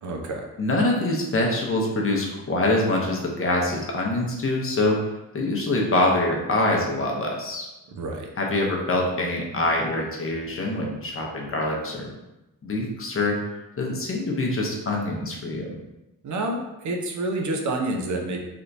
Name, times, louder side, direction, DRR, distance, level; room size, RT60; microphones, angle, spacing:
voice 1, 0.0-0.4 7.9-8.3 16.2-18.4, right 2 dB, 55° right, 2 dB, 0.6 m, -28 dB
voice 2, 0.6-7.7 8.4-12.1 12.6-13.4 13.8-15.7, left 2 dB, 35° left, -1 dB, 0.7 m, -25 dB
3.4 x 2.8 x 2.6 m, 0.99 s
cardioid pair, 85°, 36 cm